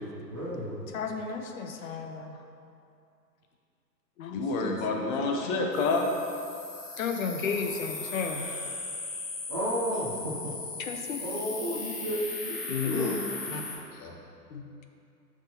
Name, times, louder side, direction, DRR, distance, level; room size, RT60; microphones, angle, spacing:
voice 1, 0.0-0.8 9.5-10.5 11.2-12.6 12.9-13.3, equal, 15° right, -10 dB, 0.4 m, -33 dB
voice 2, 0.9-2.4 4.2-5.1 5.4-5.7 7.0-8.6 10.8-11.2 12.7-13.2 13.5-13.6 14.5-14.8, left 5 dB, 55° left, 5 dB, 0.9 m, -33 dB
voice 3, 4.3-6.1 13.7-14.1, left 3 dB, 20° left, 1 dB, 0.7 m, -29 dB
sound 1, 5.7-13.8, left 3 dB, 75° left, 1.9 m, -38 dB
11.5 x 6.2 x 2.8 m, 2.6 s
figure-of-eight pair, 120°, 49 cm